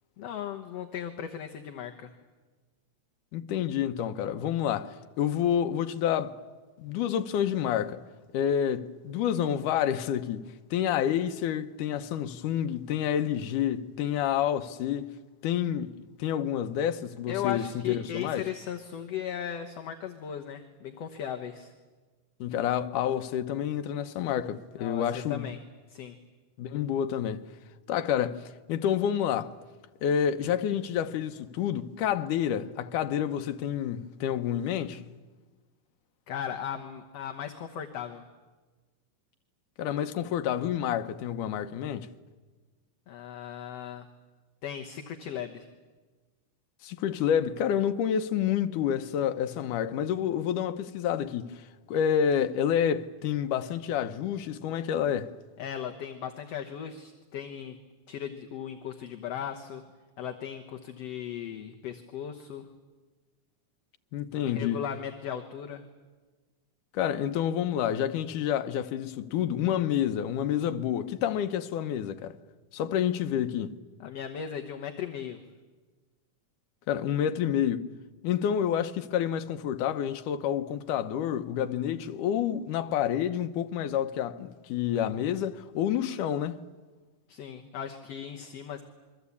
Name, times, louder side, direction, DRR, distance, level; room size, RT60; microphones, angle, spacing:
voice 1, 0.2-2.1 17.3-21.7 24.8-25.6 25.9-26.2 36.3-38.2 43.1-44.1 44.6-45.7 55.6-57.8 58.1-59.8 60.2-62.7 64.5-65.8 74.0-75.4 87.3-88.8, left 9 dB, 60° left, 2.0 m, -37 dB
voice 2, 3.3-6.4 6.8-8.0 8.3-10.5 10.7-15.1 15.4-15.9 16.2-18.4 22.4-25.5 26.6-27.4 27.9-29.5 30.0-35.0 39.8-42.1 46.8-55.3 64.1-64.8 66.9-72.4 72.7-73.7 76.9-77.9 78.2-86.6, left 9 dB, 80° left, 2.5 m, -29 dB
27.5 x 23.0 x 8.5 m
omnidirectional pair, 3.6 m